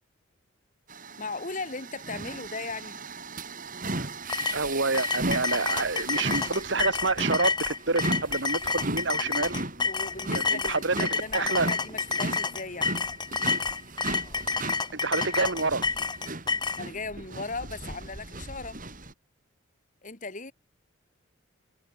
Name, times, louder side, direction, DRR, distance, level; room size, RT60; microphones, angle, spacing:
sound 1, 0.9-19.1, right 2 dB, 40° right, 5.3 m, -36 dB
voice 1, 1.2-3.0 9.8-12.9 16.8-18.8 20.0-20.5, left 3 dB, 35° left, 2.2 m, -37 dB
sound 2, 4.3-16.8, left 4 dB, 20° left, 0.9 m, -29 dB
voice 2, 4.5-9.6 10.3-11.7 14.9-15.9, right 3 dB, 55° right, 2.0 m, -28 dB
head